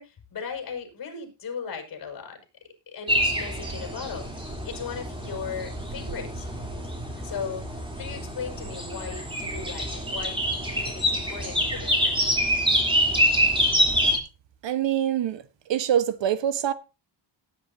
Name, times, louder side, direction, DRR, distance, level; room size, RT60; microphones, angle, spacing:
voice 1, 0.0-2.4 2.9-6.5 7.2-7.7 8.0-12.3, left 6 dB, 50° left, 5.7 m, -37 dB
sound 1, 3.1-14.2, equal, 10° right, 3.2 m, -26 dB
voice 2, 14.6-15.4 15.7-16.7, right 10 dB, 70° right, 1.3 m, -24 dB
18.0 x 9.4 x 2.7 m
wide cardioid pair, 150°, 46 cm